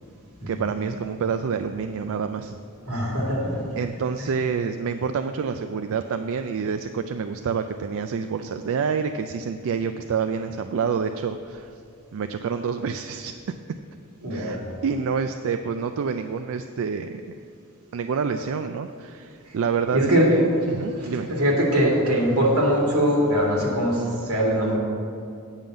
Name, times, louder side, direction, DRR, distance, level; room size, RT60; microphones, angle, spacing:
voice 1, 0.5-2.6 3.8-11.8 12.1-13.8 14.3-17.3 17.9-21.3, right 6 dB, 65° right, 8 dB, 0.4 m, -28 dB
voice 2, 2.9-3.7 14.2-14.6 19.5-19.6 19.9-24.8, equal, 85° right, -2 dB, 2.4 m, -22 dB
9.0 x 5.4 x 7.7 m, 2.5 s
head